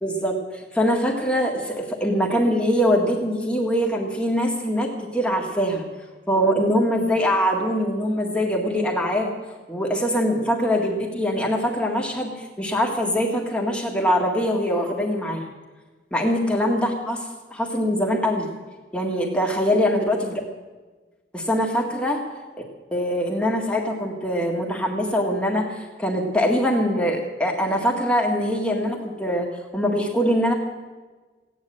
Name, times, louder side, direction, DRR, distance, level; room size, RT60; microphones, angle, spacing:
voice 1, 0.0-5.8 6.3-9.3 9.7-15.5 16.1-18.5 18.9-20.4 21.3-22.2 22.9-30.5, equal, 5° left, -1 dB, 1.8 m, -23 dB
16.0 x 9.9 x 7.6 m, 1.3 s
head